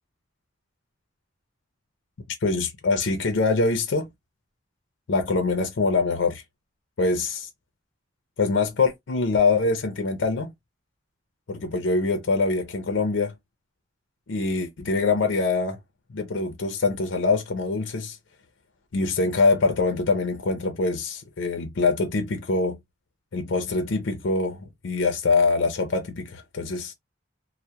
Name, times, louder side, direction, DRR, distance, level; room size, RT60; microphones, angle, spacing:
voice 1, 2.4-4.1 5.1-6.4 7.0-7.5 8.4-10.5 11.5-13.3 14.3-15.8 16.1-18.2 18.9-22.8 23.3-26.9, left 3 dB, 70° left, 0.5 m, -24 dB
2.2 x 2.1 x 2.7 m
head